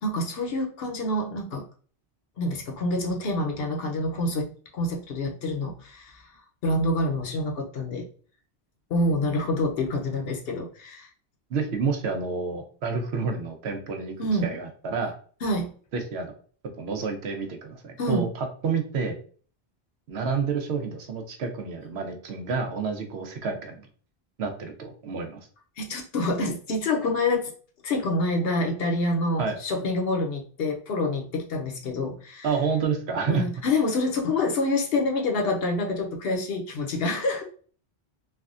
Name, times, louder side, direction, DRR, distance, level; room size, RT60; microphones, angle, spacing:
voice 1, 0.0-1.7 2.4-6.3 6.6-8.0 8.9-11.1 14.2-14.5 15.4-15.7 18.0-18.3 25.8-27.5 27.8-32.5 33.3-37.5, left 2 dB, 65° left, 2 dB, 0.8 m, -27 dB
voice 2, 11.5-14.1 14.4-15.2 15.9-16.3 16.8-19.2 20.1-23.9 24.4-25.4 29.4-29.6 32.4-33.4, right 5 dB, 75° right, 5 dB, 0.9 m, -29 dB
3.3 x 2.1 x 2.4 m, 0.43 s
omnidirectional pair, 1.1 m